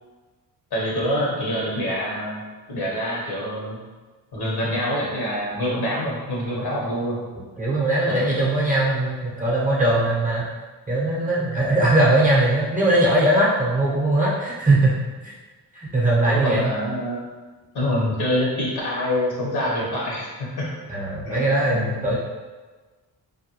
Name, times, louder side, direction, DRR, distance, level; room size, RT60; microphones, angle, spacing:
voice 1, 0.7-2.4 2.7-3.8 4.3-7.2 8.1-8.3 16.2-17.2 17.7-20.7 21.2-21.4 21.7-22.2, left 1 dB, 60° left, -5 dB, 1.1 m, -26 dB
voice 2, 7.6-10.5 10.9-15.3 15.7-16.7 20.9-22.2, right 1 dB, 20° right, -6 dB, 0.8 m, -20 dB
2.5 x 2.1 x 2.9 m, 1.3 s
supercardioid pair, 60°, 44 cm